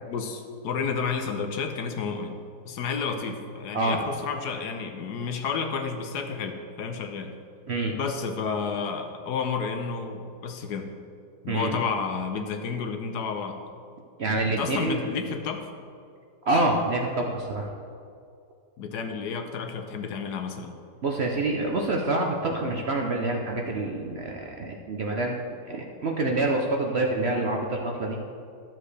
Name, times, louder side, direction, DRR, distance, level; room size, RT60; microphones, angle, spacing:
voice 1, 0.0-2.4 2.6-7.3 7.9-10.9 11.4-13.6 14.5-15.7 18.8-20.7, left 5 dB, 75° left, 5 dB, 1.3 m, -31 dB
voice 2, 11.5-11.9 14.2-15.0 16.5-17.7 21.0-25.4 25.7-28.2, right 2 dB, 55° right, 1 dB, 0.8 m, -27 dB
12.5 x 7.6 x 3.3 m, 2.3 s
omnidirectional pair, 1.8 m